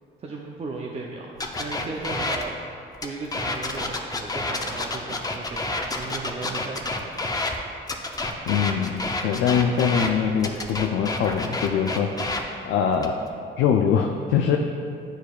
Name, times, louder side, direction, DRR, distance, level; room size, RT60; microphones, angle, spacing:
voice 1, 0.2-2.6 3.0-7.2, right 3 dB, 35° right, -2 dB, 0.6 m, -36 dB
sound 1, 1.4-2.4 3.0-7.6 7.9-10.1 10.4-12.4 12.9-13.3, left 2 dB, 20° left, 0.5 m, -29 dB
voice 2, 8.5-12.1 12.7-13.2 13.6-14.6, left 7 dB, 80° left, 3 dB, 0.4 m, -23 dB
9.9 x 4.6 x 2.4 m, 2.6 s
cardioid pair, 90°, 20 cm